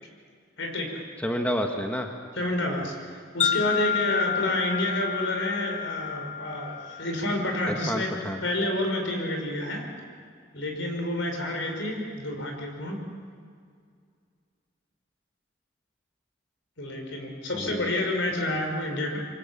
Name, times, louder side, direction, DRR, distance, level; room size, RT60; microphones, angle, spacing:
voice 1, 0.6-1.0 2.4-8.1 8.4-9.9 10.5-13.0 16.8-19.2, left 1 dB, 70° left, 2 dB, 5.3 m, -29 dB
voice 2, 1.2-2.1 7.7-8.4 17.5-17.9, equal, 5° left, 2 dB, 1.6 m, -29 dB
Wind chime, 3.4-7.7, left 8 dB, 35° left, 1.2 m, -30 dB
27.0 x 24.5 x 7.4 m, 2.2 s
head